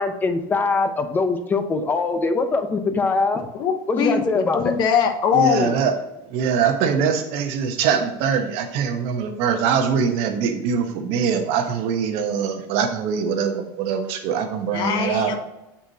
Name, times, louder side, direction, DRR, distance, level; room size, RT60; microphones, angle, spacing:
voice 1, 0.0-3.5 3.9-4.8, left 3 dB, 15° left, 7 dB, 0.7 m, -22 dB
voice 2, 3.6-5.8 14.7-15.4, left 7 dB, 40° left, 7 dB, 1.0 m, -21 dB
voice 3, 5.3-5.9 6.3-15.4, right 6 dB, 60° right, 5 dB, 1.2 m, -23 dB
7.8 x 6.0 x 2.8 m, 0.93 s
cardioid pair, 150°, 11 cm